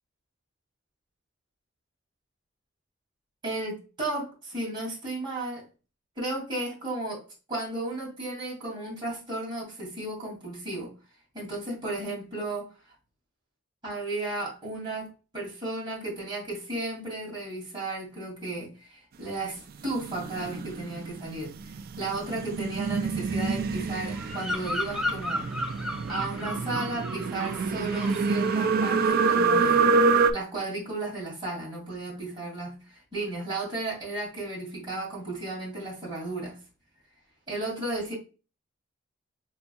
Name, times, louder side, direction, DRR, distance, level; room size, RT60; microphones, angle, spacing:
voice 1, 3.4-5.6 6.2-7.2 7.5-10.9 11.3-12.7 13.8-25.5 26.1-30.0 30.3-36.6 37.5-38.1, right 2 dB, 25° right, 2.5 m, -34 dB
sound 1, 19.8-30.3, right 4 dB, 50° right, 0.3 m, -27 dB
Bird vocalization bird call bird song, 24.1-27.7 27.9-28.3, left 1 dB, ahead, 0.6 m, -34 dB
4.4 x 4.0 x 2.3 m
head